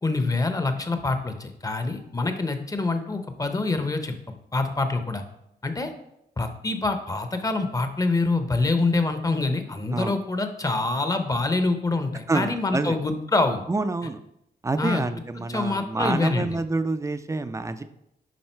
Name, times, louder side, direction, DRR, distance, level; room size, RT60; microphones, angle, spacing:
voice 1, 0.0-4.1 4.5-5.2 5.6-5.9 6.4-13.6 14.8-15.0 15.5-16.5, left 3 dB, 20° left, 7 dB, 0.8 m, -25 dB
voice 2, 12.3-13.0 13.7-14.2 14.6-17.8, right 3 dB, 15° right, 10 dB, 0.5 m, -27 dB
10.5 x 3.7 x 4.5 m, 0.80 s
cardioid pair, 105°, 17 cm